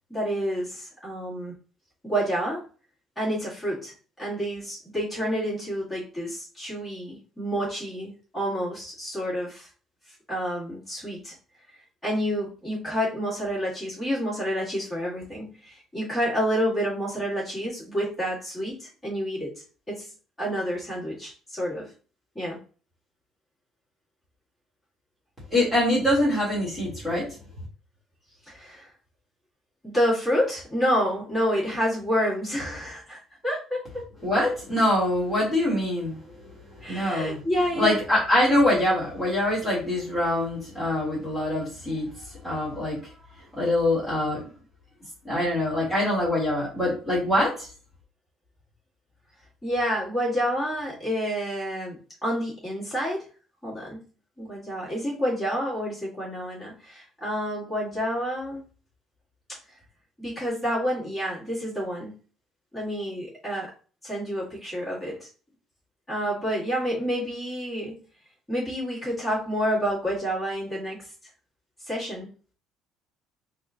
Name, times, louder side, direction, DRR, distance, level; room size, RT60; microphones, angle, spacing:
voice 1, 0.1-1.5 2.0-2.6 3.2-9.7 10.3-11.3 12.0-19.5 19.9-20.1 20.4-21.9 22.4-22.6 28.5-28.9 29.8-33.9 36.8-38.0 49.6-53.2 53.6-54.0 54.4-58.7 60.2-62.1 62.7-63.7 64.0-65.3 66.1-68.0 68.5-71.0 71.8-72.3, equal, 10° left, -8 dB, 2.0 m, -29 dB
voice 2, 25.5-27.3 34.2-36.2 36.9-37.4 37.7-42.1 42.4-43.0 43.5-44.4 45.2-47.7, left 1 dB, 10° right, -6 dB, 1.7 m, -24 dB
4.2 x 2.4 x 3.7 m, 0.38 s
cardioid pair, 175°, 0 cm